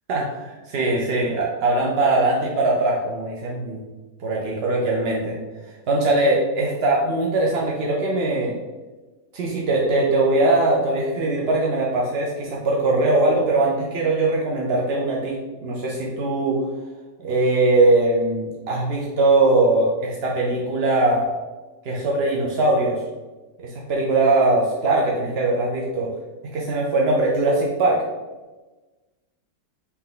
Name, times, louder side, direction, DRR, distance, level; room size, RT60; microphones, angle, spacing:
voice 1, 0.1-3.8 4.2-5.4 5.9-8.6 9.3-15.3 15.6-16.6 17.2-21.3 21.8-23.0 23.6-26.1 26.5-28.0, right 2 dB, 70° right, -3 dB, 0.5 m, -21 dB
4.4 x 2.8 x 3.8 m, 1.2 s
omnidirectional pair, 1.8 m